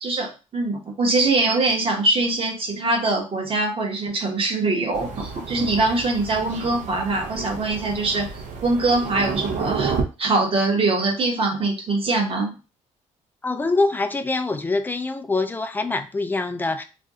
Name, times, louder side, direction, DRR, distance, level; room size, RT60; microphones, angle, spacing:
voice 1, 0.0-9.9 10.2-12.5, right 2 dB, 45° right, 0.9 m, -23 dB
Thunder, 4.9-10.0, right 5 dB, 65° right, 0.6 m, -31 dB
voice 2, 13.4-16.8, left 3 dB, 15° left, 0.3 m, -24 dB
2.5 x 2.2 x 3.6 m
cardioid pair, 110°, 14 cm